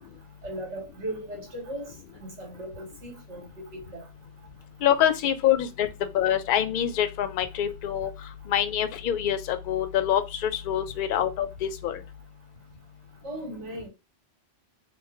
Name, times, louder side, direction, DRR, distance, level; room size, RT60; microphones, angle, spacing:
voice 1, 0.4-4.0 13.2-13.9, right 1 dB, 75° right, 1.6 m, -37 dB
voice 2, 4.8-5.9 6.1-8.1 8.5-12.0, left 10 dB, 60° left, 0.5 m, -25 dB
3.0 x 2.1 x 3.6 m
omnidirectional pair, 1.2 m